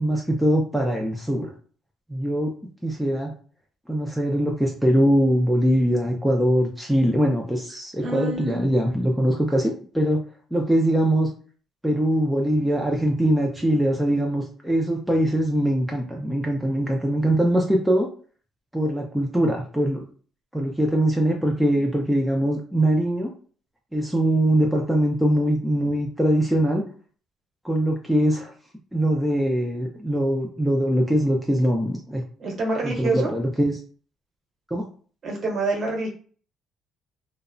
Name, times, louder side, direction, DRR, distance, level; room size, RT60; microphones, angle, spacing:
voice 1, 0.0-1.5 2.1-2.5 2.8-3.3 3.9-10.2 10.5-11.3 11.8-18.1 18.7-20.0 20.5-23.3 23.9-26.8 27.6-28.5 28.9-32.2 32.8-33.8 34.7-34.8, right 1 dB, 5° right, 0 dB, 0.4 m, -22 dB
voice 2, 8.0-8.9 32.4-33.3 35.2-36.1, right 2 dB, 45° right, -1 dB, 1.0 m, -27 dB
2.7 x 2.0 x 2.5 m, 0.42 s
cardioid pair, 130°, 0 cm